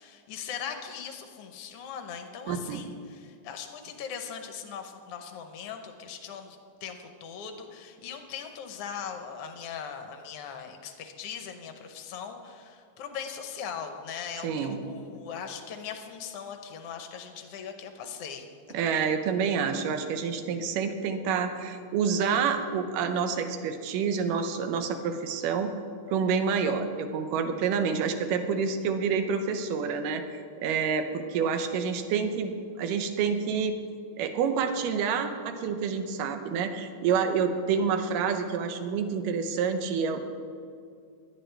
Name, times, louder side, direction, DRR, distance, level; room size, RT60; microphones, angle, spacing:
voice 1, 0.0-18.4, left 7 dB, 75° left, 5 dB, 1.4 m, -40 dB
voice 2, 2.5-2.8 14.4-14.8 18.7-25.8 26.1-30.2 30.6-33.8 34.2-40.2, right 6 dB, 80° right, 7 dB, 2.5 m, -28 dB
17.5 x 11.5 x 3.4 m, 2.3 s
omnidirectional pair, 3.9 m